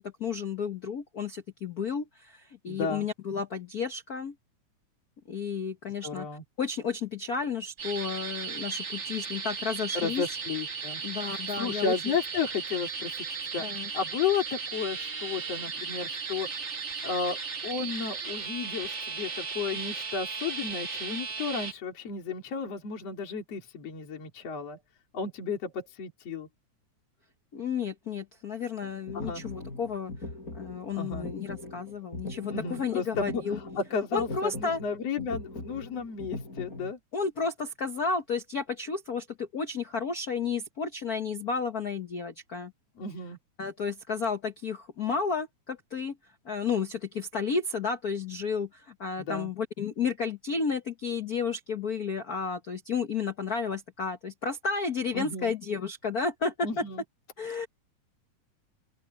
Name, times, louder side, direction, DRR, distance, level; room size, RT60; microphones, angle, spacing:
voice 1, 0.0-4.3 5.3-6.3 6.6-10.2 11.0-11.9 13.6-13.9 27.5-30.1 30.5-33.6 34.1-34.8 37.1-42.7 43.6-46.2 46.4-56.8 57.4-57.7, left 5 dB, 75° left, 0.8 m, -32 dB
voice 2, 2.7-3.1 6.0-6.4 9.9-13.3 13.5-24.8 25.1-26.5 29.1-29.4 30.9-31.3 32.5-37.0 43.0-43.4 49.2-49.5 55.1-55.5 56.6-57.0, left 5 dB, 55° left, 4.0 m, -33 dB
sound 1, 7.8-21.7, right 5 dB, 45° right, 0.9 m, -36 dB
sound 2, 28.8-36.9, left 2 dB, 25° left, 5.9 m, -41 dB
open air
omnidirectional pair, 3.4 m